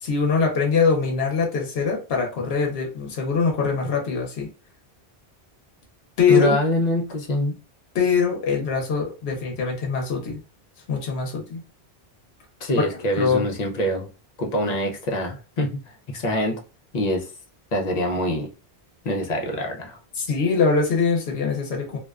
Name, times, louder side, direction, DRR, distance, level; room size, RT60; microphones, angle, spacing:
voice 1, 0.0-4.5 6.2-6.6 7.9-10.4 10.9-11.6 12.8-13.5 20.2-22.0, left 5 dB, 70° left, 0.9 m, -23 dB
voice 2, 6.3-7.6 12.6-14.1 14.4-15.8 16.1-16.6 16.9-17.3 17.7-18.5 19.0-20.0, equal, 50° left, 0.6 m, -24 dB
2.5 x 2.1 x 2.3 m
omnidirectional pair, 1.1 m